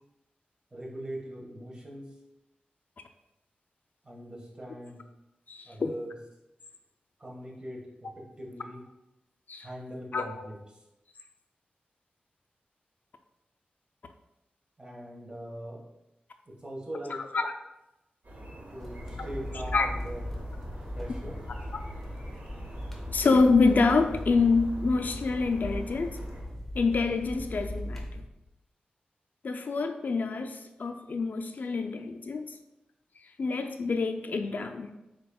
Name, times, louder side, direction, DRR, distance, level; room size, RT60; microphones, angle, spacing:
voice 1, 0.7-2.2 4.0-5.0 5.7-6.2 7.2-8.8 9.6-10.8 14.8-15.8 16.6-17.2 18.7-20.4 20.9-21.4, right 1 dB, 30° right, -3 dB, 1.4 m, -41 dB
voice 2, 5.5-5.9 9.5-9.7 10.1-10.3 17.3-17.5 19.7-19.9 23.1-26.2 26.8-28.1 29.4-32.5 33.4-34.9, left 4 dB, 65° left, 7 dB, 0.3 m, -26 dB
sound 1, 18.2-26.4, right 1 dB, 60° right, 1.3 m, -45 dB
sound 2, 18.8-28.2, left 1 dB, 5° left, 0.9 m, -39 dB
5.0 x 4.1 x 2.3 m, 0.94 s
cardioid pair, 65°, 3 cm